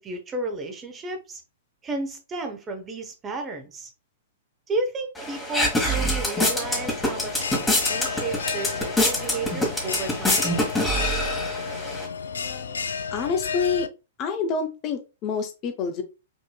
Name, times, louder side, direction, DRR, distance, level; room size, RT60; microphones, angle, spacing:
voice 1, 0.0-1.4 1.8-3.9 4.7-10.5, right 2 dB, 20° right, 0.9 m, -32 dB
sound 1, 5.2-12.1, left 1 dB, 10° left, 1.4 m, -25 dB
Bell, 6.4-13.9, left 6 dB, 65° left, 0.3 m, -32 dB
voice 2, 12.3-13.9 14.2-16.0, left 5 dB, 30° left, 0.7 m, -28 dB
5.4 x 3.0 x 2.2 m
figure-of-eight pair, 105°, 0 cm